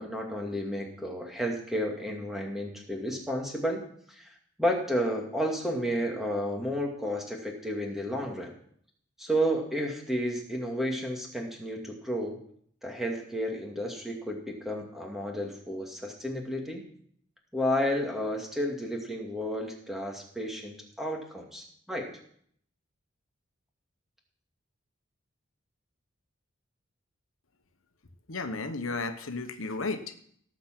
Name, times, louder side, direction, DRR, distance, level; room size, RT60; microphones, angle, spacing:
voice 1, 0.0-3.8 4.1-8.5 9.2-12.4 12.8-16.8 17.5-22.1, equal, ahead, 1 dB, 2.3 m, -32 dB
voice 2, 28.3-30.1, left 3 dB, 80° left, 8 dB, 1.2 m, -33 dB
18.0 x 7.4 x 6.0 m, 0.63 s
head